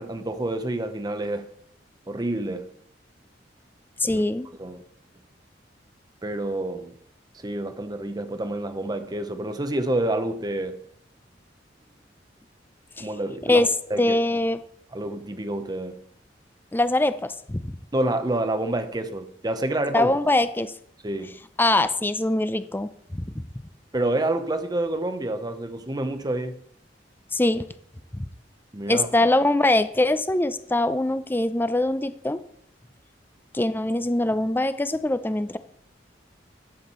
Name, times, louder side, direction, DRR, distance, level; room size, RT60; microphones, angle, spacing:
voice 1, 0.0-1.5 2.1-2.7 4.0-4.2 4.6-4.8 6.2-6.9 7.4-10.8 13.0-14.2 14.9-16.0 17.9-20.1 21.0-21.4 23.9-26.6 28.7-29.1, right 1 dB, 20° right, 0.7 m, -28 dB
voice 2, 4.0-4.5 13.0-13.1 13.5-13.7 14.0-14.6 16.7-17.6 19.9-20.7 21.6-23.2 27.3-27.6 28.2-28.3 28.9-32.4 33.5-35.6, left 2 dB, 10° left, 0.5 m, -23 dB
11.0 x 7.3 x 4.3 m
head